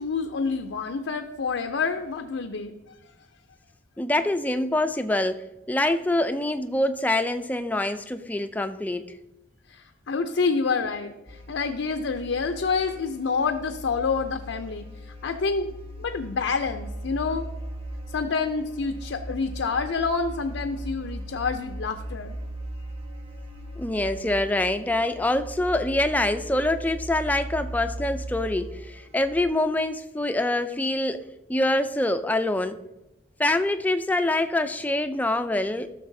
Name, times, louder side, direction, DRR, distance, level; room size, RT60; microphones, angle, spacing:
voice 1, 0.0-2.8 9.7-17.5 18.1-22.4, left 4 dB, 85° left, 6 dB, 0.5 m, -28 dB
voice 2, 4.0-9.0 23.8-32.8 33.4-35.9, left 1 dB, 10° left, 9 dB, 0.4 m, -25 dB
sound 1, 11.3-29.4, right 1 dB, 30° right, 0.9 m, -38 dB
13.5 x 6.5 x 2.7 m, 0.98 s
head